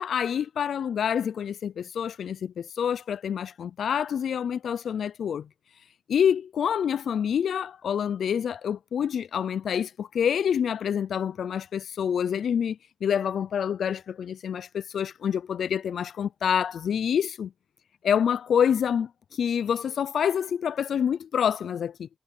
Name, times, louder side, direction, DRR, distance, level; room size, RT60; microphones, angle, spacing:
voice 1, 0.0-5.5 6.1-17.5 18.0-22.1, left 8 dB, 85° left, 0.3 m, -27 dB
cardioid pair, 45°, 0 cm